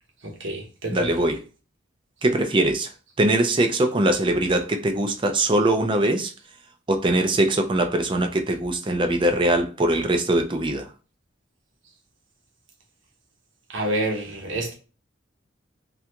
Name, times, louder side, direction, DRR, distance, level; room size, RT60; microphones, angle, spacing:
voice 1, 0.2-1.1 13.7-14.7, right 1 dB, 70° right, 0.9 m, -28 dB
voice 2, 0.9-1.4 2.2-2.9 3.2-6.3 6.9-10.9, right 1 dB, 25° right, 0.4 m, -22 dB
3.3 x 2.5 x 2.8 m
head